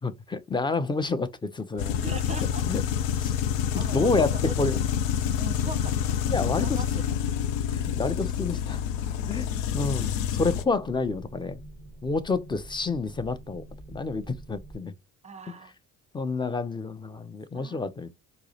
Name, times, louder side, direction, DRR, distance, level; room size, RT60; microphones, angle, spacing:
voice 1, 0.0-2.0 2.7-2.8 3.2-3.3 3.7-4.3 4.6-4.8 6.3-6.8 7.9-8.8 9.3-11.6 12.0-14.9 16.1-18.1, left 3 dB, 10° left, 0.5 m, -29 dB
sound 1, 1.8-10.6, left 9 dB, 85° left, 0.5 m, -27 dB
voice 2, 2.0-2.7 3.7-4.6 5.4-6.2 6.6-7.2 8.6-8.7 15.2-15.7 17.5-17.8, right 3 dB, 20° right, 0.8 m, -40 dB
sound 2, 4.0-14.8, right 1 dB, 35° left, 1.3 m, -46 dB
4.6 x 2.0 x 2.8 m
hypercardioid pair, 60°, 38 cm